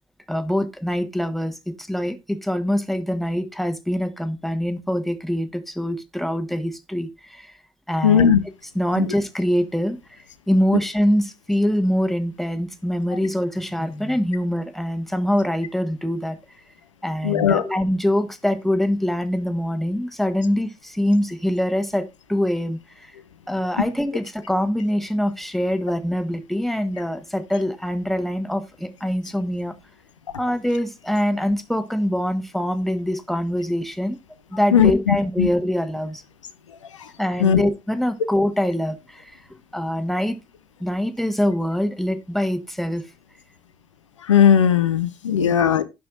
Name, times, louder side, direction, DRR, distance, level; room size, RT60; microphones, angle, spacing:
voice 1, 0.3-7.5 7.9-8.3 8.7-10.0 10.5-16.4 17.0-23.1 23.5-29.7 30.4-34.2 34.5-36.2 37.2-39.3 39.7-40.4 40.8-43.0, equal, ahead, 1.4 m, -24 dB
voice 2, 8.0-8.4 9.0-9.1 17.2-17.6 34.7-35.5 37.4-37.7 44.3-45.8, left 8 dB, 90° left, 0.6 m, -17 dB
16.0 x 5.9 x 2.5 m
figure-of-eight pair, 50°, 15 cm